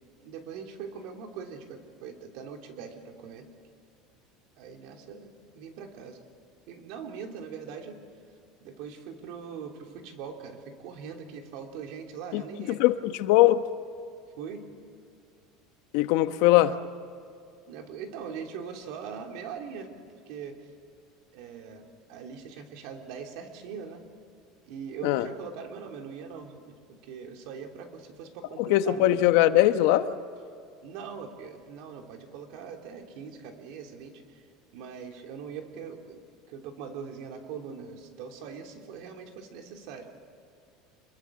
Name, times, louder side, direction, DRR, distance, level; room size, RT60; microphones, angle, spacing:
voice 1, 0.2-3.5 4.6-6.2 6.7-8.0 8.6-12.8 14.4-14.7 17.7-19.9 20.3-20.6 21.3-24.0 24.7-26.8 27.0-29.2 30.8-34.4 34.7-36.2 36.5-40.1, right 6 dB, 60° right, 3.2 m, -41 dB
voice 2, 12.7-13.6 15.9-16.8 25.0-25.3 28.6-30.1, left 15 dB, 65° left, 1.0 m, -21 dB
27.5 x 22.0 x 7.5 m
cardioid pair, 170°, 0 cm